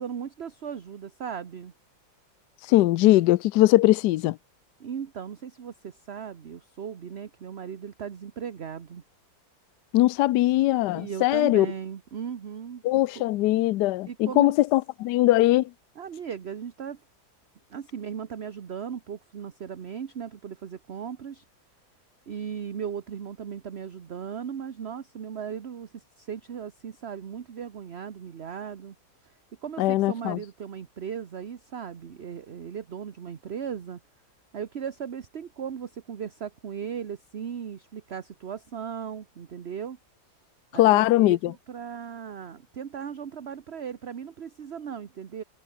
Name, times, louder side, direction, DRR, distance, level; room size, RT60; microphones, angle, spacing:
voice 1, 0.0-1.7 4.8-9.0 10.9-13.2 14.1-14.6 16.0-17.0 17.7-21.4 22.3-29.0 29.2-29.3 29.6-34.0 34.5-40.0 40.7-45.4, right 7 dB, 45° right, 1.0 m, -37 dB
voice 2, 2.7-4.4 9.9-11.7 12.8-15.7 29.8-30.4 40.8-41.5, left 16 dB, 70° left, 1.1 m, -21 dB
omnidirectional pair, 2.1 m